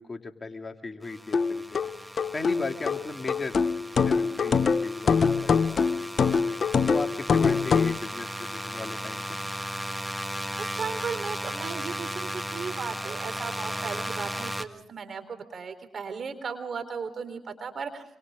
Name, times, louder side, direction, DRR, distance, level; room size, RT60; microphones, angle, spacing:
voice 1, 0.0-3.6 4.0-5.8 6.8-9.4, left 3 dB, 35° left, 5 dB, 2.6 m, -36 dB
sound 1, 1.0-14.7, equal, 5° right, 2.0 m, -36 dB
sound 2, 1.3-8.0, left 5 dB, 55° left, 0.9 m, -24 dB
voice 2, 10.6-18.0, right 5 dB, 55° right, 8 dB, 4.0 m, -36 dB
26.5 x 26.0 x 3.8 m, 0.73 s
hypercardioid pair, 45°, 0 cm